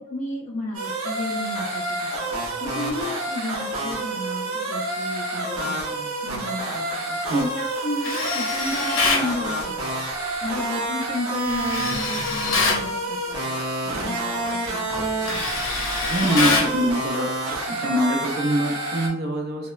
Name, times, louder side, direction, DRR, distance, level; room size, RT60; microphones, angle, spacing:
voice 1, 0.0-10.1 10.4-13.6 13.9-15.6, left 1 dB, 35° left, -5 dB, 0.3 m, -33 dB
sound 1, 0.7-19.1, right 1 dB, 80° right, 0.7 m, -28 dB
Tools, 8.0-9.3 11.5-12.8 14.3-14.6 14.9-16.8, left 3 dB, 70° left, 0.6 m, -25 dB
voice 2, 15.9-19.7, equal, 45° right, 2 dB, 0.4 m, -24 dB
3.0 x 2.1 x 2.3 m, 0.81 s
head